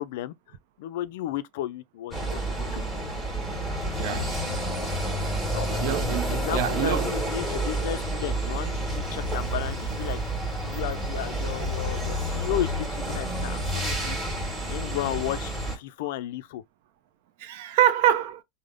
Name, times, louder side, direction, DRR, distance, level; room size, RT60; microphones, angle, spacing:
voice 1, 0.0-2.8 5.5-5.7 6.3-10.2 10.7-14.3 14.7-16.6, left 13 dB, 70° left, 0.3 m, -34 dB
sound 1, 2.1-15.8, right 1 dB, 10° right, 1.2 m, -29 dB
voice 2, 4.0-4.3 5.8-7.1 17.4-18.4, right 11 dB, 65° right, 0.5 m, -25 dB
3.3 x 2.0 x 2.4 m
supercardioid pair, 130°, 0 cm